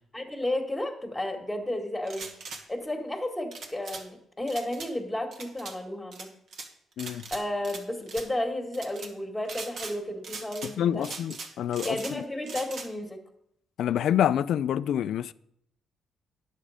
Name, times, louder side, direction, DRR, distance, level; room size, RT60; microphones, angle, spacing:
voice 1, 0.1-2.3 2.7-6.3 7.3-11.1 11.8-13.2, left 1 dB, 5° left, 1.8 m, -32 dB
sound 1, 2.0-2.6 3.5-4.0 4.5-4.9 5.3-5.7 6.1-6.7 7.0-7.8 8.1-8.3 8.7-9.1 9.4-10.0 10.2-10.7 11.0-12.1 12.4-12.9, right 4 dB, 60° right, 1.5 m, -40 dB
voice 2, 10.6-12.2 13.8-15.3, left 10 dB, 75° left, 0.3 m, -27 dB
10.0 x 7.3 x 5.0 m
cardioid pair, 90°, 0 cm